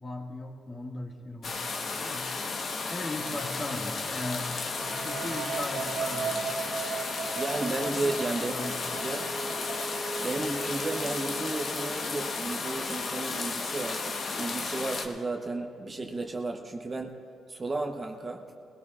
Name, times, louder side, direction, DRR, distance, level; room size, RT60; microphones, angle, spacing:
voice 1, 0.0-1.6 2.0-2.4 2.9-4.6 5.0-6.4 7.8-9.1, left 1 dB, 30° left, 0 dB, 1.9 m, -38 dB
sound 1, 1.4-15.1, left 4 dB, 55° left, 1.2 m, -34 dB
sound 2, 4.8-12.5, right 5 dB, 70° right, 1.2 m, -37 dB
voice 2, 7.3-9.3 10.2-17.2 17.5-18.4, right 2 dB, 30° right, 3 dB, 1.0 m, -33 dB
21.0 x 16.5 x 2.5 m, 2.7 s
cardioid pair, 90°, 0 cm